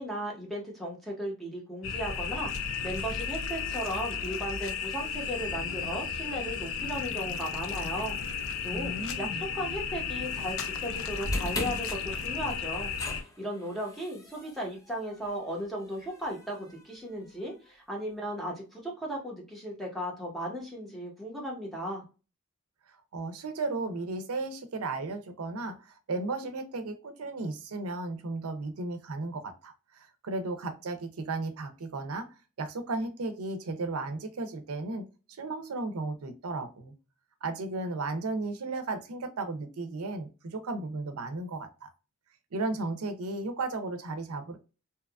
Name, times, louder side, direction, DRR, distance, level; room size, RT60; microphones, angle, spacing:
voice 1, 0.0-9.3 9.5-22.0, equal, ahead, -3 dB, 0.9 m, -36 dB
sound 1, 1.8-13.2, left 6 dB, 65° left, 0.4 m, -34 dB
voice 2, 8.7-9.5 23.1-32.3 32.6-35.0 35.4-36.9 37.4-41.9 42.5-44.6, right 3 dB, 80° right, 7 dB, 0.5 m, -35 dB
sound 2, 11.2-17.5, left 1 dB, 15° left, 0.6 m, -39 dB
2.8 x 2.3 x 2.3 m, 0.32 s
head